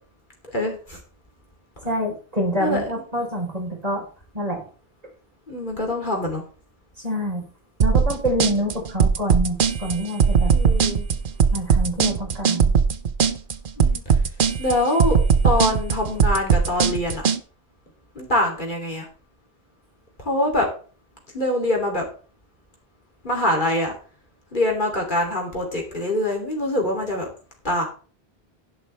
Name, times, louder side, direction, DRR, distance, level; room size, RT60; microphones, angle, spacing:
voice 1, 0.5-1.0 2.6-2.8 5.5-6.4 10.5-11.0 13.8-14.1 14.6-17.3 18.1-19.1 20.2-20.7 21.3-22.0 23.2-24.0 24.5-27.3 27.6-27.9, left 1 dB, 50° left, 0 dB, 3.2 m, -24 dB
voice 2, 1.8-4.0 4.3-4.6 7.0-7.4 7.8-10.5 11.5-12.7, equal, 40° right, 0 dB, 4.2 m, -26 dB
sound 1, 7.8-17.4, right 6 dB, 55° right, 0.9 m, -19 dB
11.0 x 11.0 x 3.4 m, 0.39 s
omnidirectional pair, 1.1 m